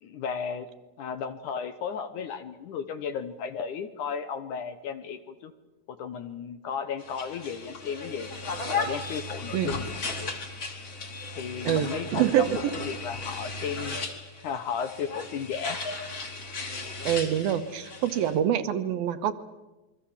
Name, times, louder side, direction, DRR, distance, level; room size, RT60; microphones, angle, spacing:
voice 1, 0.0-0.7 1.0-5.5 5.9-8.3 8.7-10.4 11.3-14.0 14.4-15.9, left 6 dB, 65° left, 10 dB, 2.2 m, -34 dB
sound 1, 7.0-18.4, left 3 dB, 35° left, 3.6 m, -36 dB
voice 2, 11.7-12.5 17.1-19.3, right 10 dB, 75° right, 10 dB, 2.9 m, -25 dB
27.5 x 23.5 x 7.2 m, 1.1 s
omnidirectional pair, 4.4 m